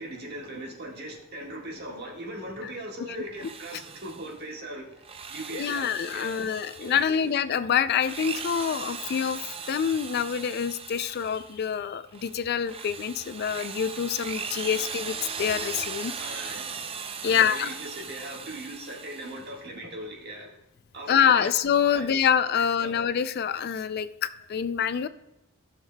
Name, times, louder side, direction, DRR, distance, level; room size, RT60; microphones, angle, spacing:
voice 1, 0.0-5.0 5.3-6.4 6.8-7.1 16.2-16.7 17.2-20.5 20.9-21.5 21.9-22.2 22.8-22.9, right 1 dB, 50° right, -1 dB, 1.6 m, -39 dB
Drill, 3.3-4.4 4.9-7.3 7.9-11.6 12.1-19.6, right 6 dB, 25° right, 0.5 m, -38 dB
voice 2, 5.5-16.1 17.2-17.7 21.1-25.1, left 8 dB, 50° left, 13 dB, 0.3 m, -26 dB
15.0 x 6.4 x 2.2 m, 0.89 s
head